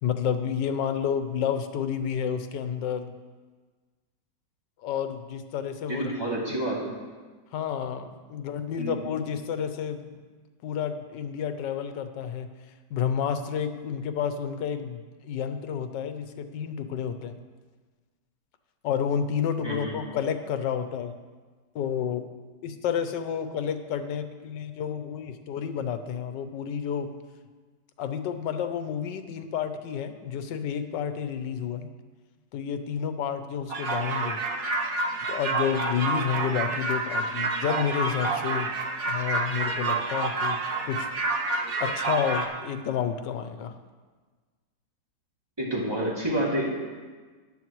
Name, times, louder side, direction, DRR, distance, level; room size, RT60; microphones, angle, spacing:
voice 1, 0.0-3.1 4.8-6.1 7.5-10.0 10.6-12.5 12.9-17.4 18.8-21.1 21.7-22.3 22.6-27.1 28.0-31.9 32.5-34.4 35.3-38.7 39.1-40.6 40.8-41.1 41.8-43.7, left 8 dB, 85° left, 9 dB, 1.4 m, -30 dB
voice 2, 5.9-6.9 8.8-9.0 19.6-20.0 45.6-46.6, right 1 dB, 15° right, -6 dB, 2.6 m, -29 dB
sound 1, 33.7-42.4, right 3 dB, 55° right, 1.4 m, -28 dB
14.5 x 10.0 x 3.1 m, 1.4 s
omnidirectional pair, 1.9 m